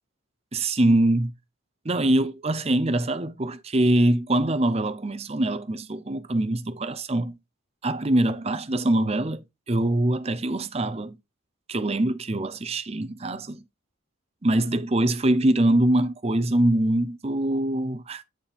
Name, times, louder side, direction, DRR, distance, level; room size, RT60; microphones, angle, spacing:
voice 1, 0.5-1.3 1.8-7.4 7.8-11.2 11.7-13.6 14.4-18.2, right 1 dB, 30° right, 0.6 m, -23 dB
8.9 x 4.2 x 3.5 m
head